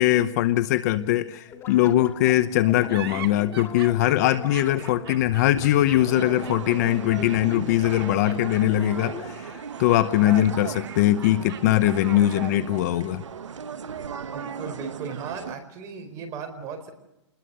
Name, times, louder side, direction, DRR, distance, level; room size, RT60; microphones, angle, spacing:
voice 1, 0.0-13.2, left 14 dB, 35° left, 13 dB, 0.9 m, -21 dB
sound 1, 1.5-9.6, left 7 dB, 15° left, 2.3 m, -41 dB
sound 2, 2.9-12.7, right 11 dB, 55° right, 2.1 m, -43 dB
sound 3, 6.0-15.6, right 7 dB, 90° right, 1.5 m, -36 dB
voice 2, 14.3-16.9, right 5 dB, 25° right, 6 dB, 4.5 m, -36 dB
28.0 x 21.0 x 6.8 m, 0.93 s
hypercardioid pair, 160°, 15 cm